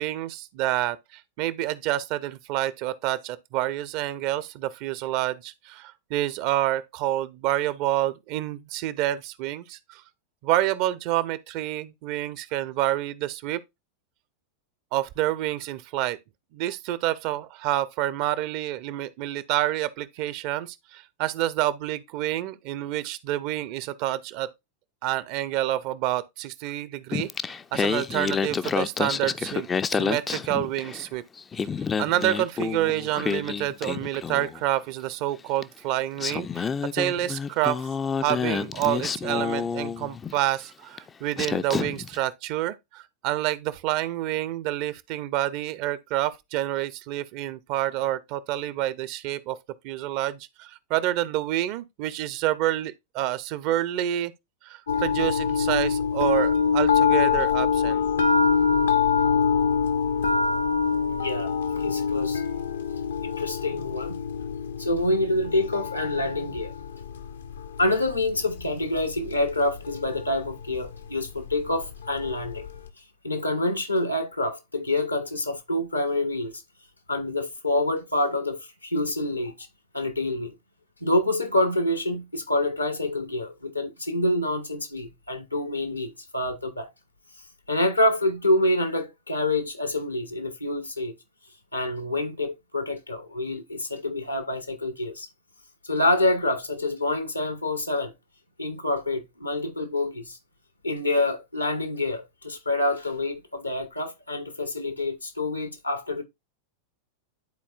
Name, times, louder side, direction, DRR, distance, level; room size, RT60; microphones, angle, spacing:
voice 1, 0.0-10.0 10.4-13.6 14.9-16.2 16.5-24.5 25.0-31.2 32.0-37.9 38.2-49.6 49.8-54.3 54.6-58.0, right 14 dB, 45° right, 0.6 m, -28 dB
Singing, 27.1-31.1 31.4-34.6 35.6-35.7 36.2-40.4 41.0-41.1 41.4-42.2, left 6 dB, 20° left, 0.4 m, -29 dB
sound 1, 54.9-72.9, left 6 dB, 70° left, 0.7 m, -26 dB
voice 2, 61.1-62.4 63.2-64.2 64.8-66.7 67.8-72.7 73.2-76.6 77.1-79.5 79.9-80.5 81.0-86.9 87.7-91.1 91.7-95.3 95.8-98.1 98.6-100.4 100.8-106.2, left 1 dB, 85° left, 1.2 m, -27 dB
11.5 x 4.2 x 2.3 m
figure-of-eight pair, 90°, 0 cm